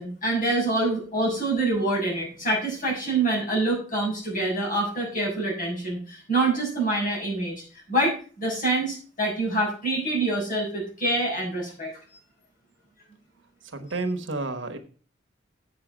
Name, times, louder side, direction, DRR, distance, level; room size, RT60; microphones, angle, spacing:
voice 1, 0.0-11.9, right 2 dB, 45° left, -2 dB, 6.6 m, -26 dB
voice 2, 13.6-14.8, right 2 dB, 85° right, 7 dB, 1.4 m, -30 dB
8.3 x 6.6 x 6.2 m, 0.39 s
head